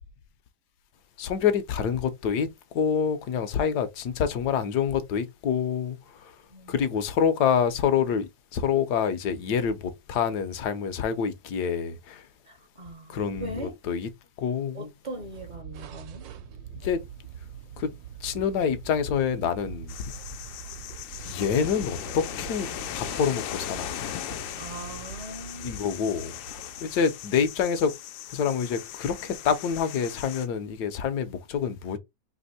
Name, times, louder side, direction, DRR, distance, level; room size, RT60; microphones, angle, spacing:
voice 1, 1.2-2.5 2.7-6.3 6.7-12.3 13.1-14.1 14.4-14.9 16.8-17.0 17.8-17.9 18.2-20.1 21.2-22.7 22.9-24.1 25.6-26.3 26.8-27.9 28.3-32.0, left 7 dB, 70° left, 1.2 m, -27 dB
voice 2, 6.5-6.9 12.5-13.8 14.7-16.3 24.5-25.8, right 1 dB, 40° right, 0.6 m, -40 dB
sound 1, 15.1-27.3, right 10 dB, 80° right, 1.4 m, -44 dB
sound 2, 19.9-30.5, left 12 dB, 90° left, 1.3 m, -38 dB
3.4 x 2.9 x 4.1 m
omnidirectional pair, 2.0 m